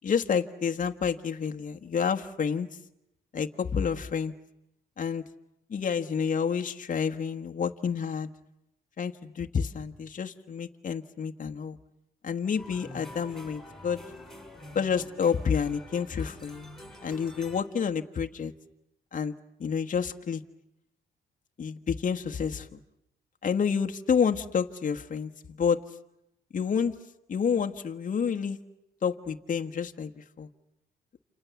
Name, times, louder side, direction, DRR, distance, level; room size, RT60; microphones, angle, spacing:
voice 1, 0.0-2.7 3.3-4.3 5.0-5.2 5.7-8.3 9.0-11.8 12.2-14.0 14.7-16.7 17.0-18.5 19.1-19.3 19.6-20.4 21.6-22.7 23.4-25.3 25.6-25.8 26.5-26.9 27.3-28.6 29.0-30.5, left 6 dB, 40° left, 5 dB, 1.3 m, -29 dB
sound 1, 12.6-17.6, left 1 dB, ahead, 5.6 m, -46 dB
29.0 x 27.0 x 7.1 m, 0.85 s
cardioid pair, 90°, 20 cm